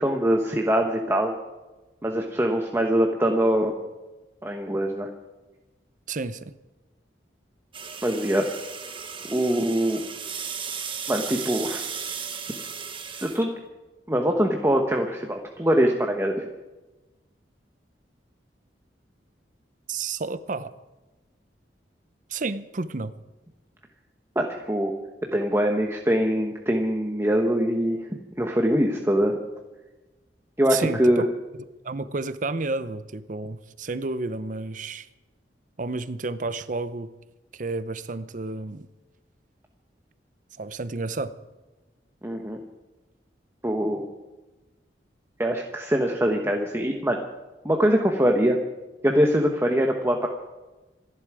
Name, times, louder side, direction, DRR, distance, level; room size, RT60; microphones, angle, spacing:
voice 1, 0.0-1.3 2.0-3.7 4.4-5.1 8.0-8.5 9.3-10.0 11.1-11.9 13.2-13.6 14.1-16.5 24.3-24.9 25.3-28.0 28.4-29.4 30.6-31.2 42.2-42.6 43.6-44.0 45.4-47.2 47.6-48.6 49.0-50.3, equal, 15° right, 2 dB, 1.1 m, -23 dB
voice 2, 6.1-6.5 19.9-20.7 22.3-23.1 30.7-31.3 31.8-35.1 35.8-37.1 37.5-38.9 40.6-41.4, right 3 dB, 45° right, 14 dB, 0.7 m, -31 dB
sound 1, 7.7-13.4, right 6 dB, 30° right, 1.4 m, -35 dB
27.0 x 11.0 x 4.9 m, 1.1 s
head